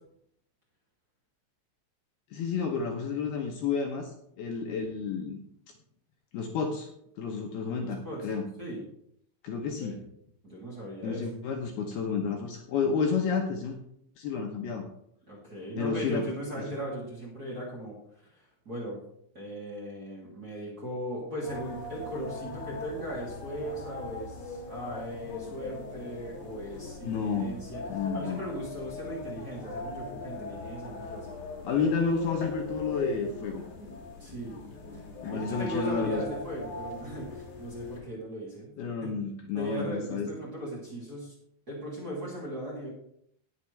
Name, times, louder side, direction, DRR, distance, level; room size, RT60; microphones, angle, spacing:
voice 1, 2.3-4.1 4.4-5.4 6.3-6.9 7.2-8.5 9.4-10.0 11.0-13.8 14.2-14.9 15.8-16.3 16.5-16.6 27.0-27.6 27.9-28.5 31.6-33.6 35.2-36.2 38.8-40.3, left 5 dB, 75° left, 2 dB, 2.6 m, -30 dB
voice 2, 7.8-8.3 8.6-8.8 9.8-9.9 10.4-11.2 15.3-17.9 18.3-19.0 19.3-31.4 34.2-34.6 34.9-35.0 35.3-38.7 39.0-39.1 39.5-41.3 41.7-42.9, right 1 dB, 25° right, -5 dB, 2.4 m, -38 dB
sound 1, 21.4-38.0, left 3 dB, 45° left, 2.6 m, -40 dB
18.5 x 7.1 x 3.3 m, 0.72 s
omnidirectional pair, 5.2 m